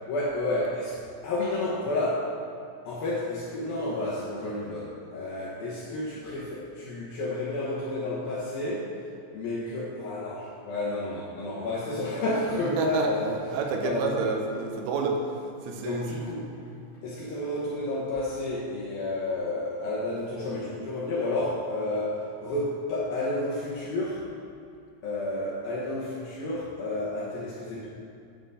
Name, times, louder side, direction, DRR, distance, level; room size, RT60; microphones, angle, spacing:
voice 1, 0.1-2.3 2.8-8.9 9.3-13.4 13.8-14.2 15.7-16.5 17.0-24.2 25.0-27.9, left 2 dB, 70° left, -7 dB, 2.3 m, -31 dB
voice 2, 12.6-13.1 13.5-15.2 15.6-16.0, right 5 dB, 80° right, 2 dB, 3.4 m, -29 dB
10.0 x 5.9 x 5.6 m, 2.5 s
omnidirectional pair, 5.7 m